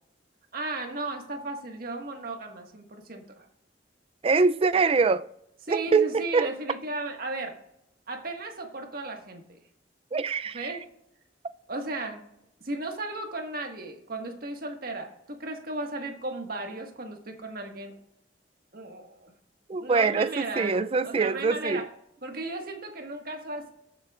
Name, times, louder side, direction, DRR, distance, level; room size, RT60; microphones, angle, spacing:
voice 1, 0.5-3.5 5.6-7.5 8.1-9.6 10.5-10.9 11.7-12.2 12.6-17.9 18.7-19.3 19.8-21.8 22.2-23.7, right 2 dB, 55° right, 1.6 m, -35 dB
voice 2, 4.2-5.2 5.7-6.5 10.1-10.8 19.7-21.8, right 4 dB, 30° right, 0.4 m, -24 dB
21.0 x 7.7 x 2.4 m
head